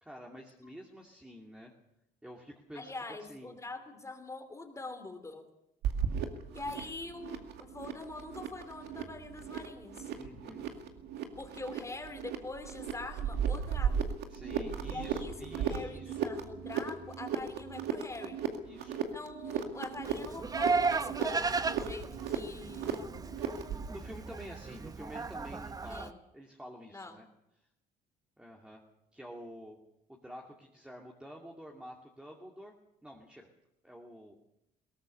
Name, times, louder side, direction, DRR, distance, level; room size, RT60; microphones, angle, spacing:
voice 1, 0.0-1.7 2.2-2.9 3.2-3.6 6.6-7.1 10.1-10.6 14.3-16.4 18.6-19.0 23.9-27.2 28.4-28.8 29.1-29.8 30.1-32.7 33.0-33.5 33.8-34.4, equal, 5° right, -1 dB, 2.6 m, -49 dB
voice 2, 2.7-5.4 6.5-10.1 11.2-13.9 14.9-18.4 19.1-23.2 25.9-26.1 26.9-27.2, left 2 dB, 20° left, 5 dB, 3.0 m, -44 dB
sound 1, 5.8-23.9, right 8 dB, 80° right, 2.2 m, -36 dB
Livestock farm animals working animals, 20.0-26.1, right 4 dB, 20° right, 0.8 m, -35 dB
21.0 x 18.0 x 6.8 m, 0.83 s
cardioid pair, 110°, 17 cm